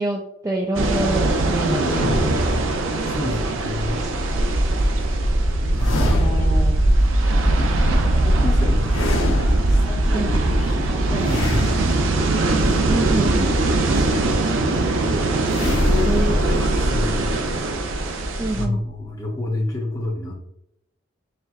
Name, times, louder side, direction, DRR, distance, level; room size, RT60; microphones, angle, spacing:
voice 1, 0.0-2.4 3.9-4.4 10.1-10.3 12.9-13.5 16.1-16.3 18.4-18.8, right 1 dB, 15° right, 0 dB, 0.3 m, -26 dB
sound 1, 0.7-18.6, right 2 dB, 75° right, 0.6 m, -20 dB
voice 2, 1.6-1.9 2.8-4.0 5.0-5.2 5.8-6.8 7.4-12.2 12.6-15.4 15.6-17.7 18.0-18.2 18.5-20.3, left 1 dB, 20° left, -3 dB, 0.7 m, -31 dB
sound 2, 1.8-3.4 5.8-6.8 8.9-10.1 11.2-13.0 15.5-19.0, left 1 dB, 75° left, 1.0 m, -25 dB
4.3 x 3.5 x 2.4 m, 0.77 s
head